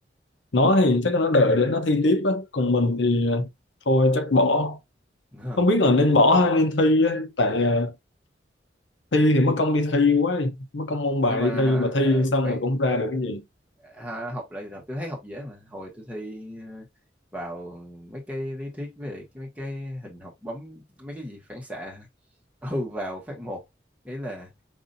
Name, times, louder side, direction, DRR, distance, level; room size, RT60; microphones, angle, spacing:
voice 1, 0.5-3.5 3.9-4.8 5.6-7.9 9.1-13.4, left 2 dB, 80° left, 0.8 m, -21 dB
voice 2, 5.3-5.7 11.3-12.6 13.8-16.9 17.3-22.1 22.6-23.6 24.0-24.5, equal, 10° right, 1.3 m, -35 dB
5.4 x 2.7 x 2.6 m
head